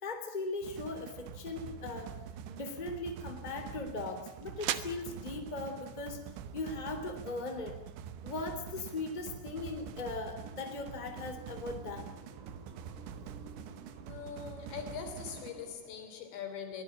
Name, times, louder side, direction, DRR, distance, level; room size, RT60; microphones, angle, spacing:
voice 1, 0.0-2.1 2.5-6.2 6.5-7.7 8.2-12.2, left 3 dB, 10° left, 2.7 m, -39 dB
sound 1, 0.6-15.5, right 8 dB, 90° right, 3.6 m, -46 dB
sound 2, 2.0-7.9, right 12 dB, 70° right, 2.8 m, -44 dB
sound 3, 10.3-15.7, right 2 dB, 45° right, 7.6 m, -54 dB
voice 2, 14.1-16.8, left 7 dB, 75° left, 5.6 m, -42 dB
23.0 x 19.0 x 8.8 m
omnidirectional pair, 5.1 m